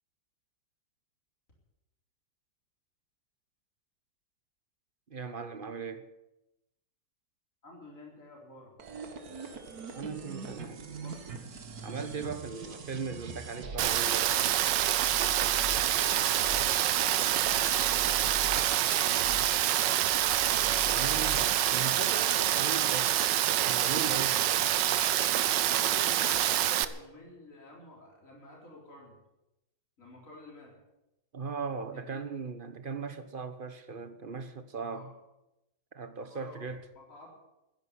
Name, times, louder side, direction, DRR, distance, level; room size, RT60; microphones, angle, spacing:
voice 1, 5.1-6.1 9.9-10.9 11.8-14.4 20.9-23.2 23.5-24.8 31.3-35.1 35.9-36.8, right 5 dB, 35° right, 1.0 m, -38 dB
voice 2, 7.6-8.7 10.9-11.4 12.7-12.8 16.0-19.3 25.6-29.2 30.0-30.7 31.9-32.2 34.9-35.1 36.3-36.6 37.0-37.4, left 1 dB, 40° left, 4.4 m, -50 dB
sound 1, 8.8-22.0, right 4 dB, 55° right, 1.9 m, -42 dB
Rain, 13.8-26.9, right 12 dB, 75° right, 1.4 m, -26 dB
14.0 x 10.5 x 9.7 m
omnidirectional pair, 2.0 m